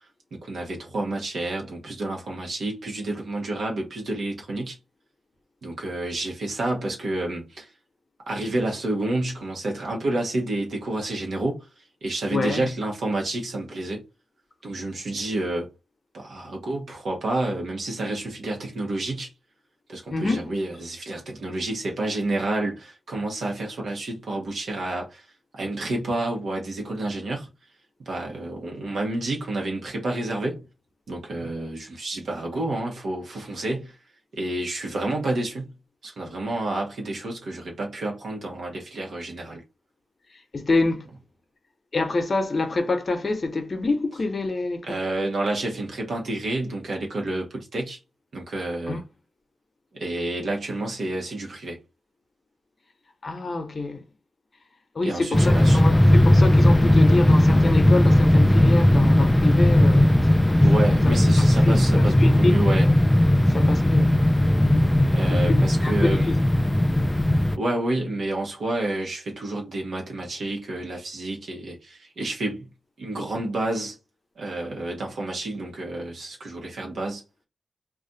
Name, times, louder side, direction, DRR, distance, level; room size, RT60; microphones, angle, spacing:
voice 1, 0.3-4.8 5.6-7.7 8.3-11.7 12.0-14.0 14.6-15.7 16.1-19.3 19.9-25.2 25.5-27.5 28.0-30.7 31.1-34.0 34.3-35.8 36.0-39.6 44.8-48.0 48.3-49.0 49.9-51.8 55.0-55.8 60.6-62.9 65.1-66.3 67.6-72.7 73.0-74.0 74.4-77.2, right 2 dB, 75° right, 1.0 m, -29 dB
voice 2, 12.3-12.7 20.1-20.5 40.5-41.1 41.9-45.0 48.9-49.0 53.2-54.0 54.9-60.1 61.0-61.8 62.2-62.8 63.5-64.2 64.7-64.9 65.3-66.3, left 3 dB, 50° left, 0.7 m, -27 dB
sound 1, 55.3-67.6, left 1 dB, 15° left, 0.3 m, -17 dB
2.4 x 2.3 x 3.9 m
supercardioid pair, 45°, 0 cm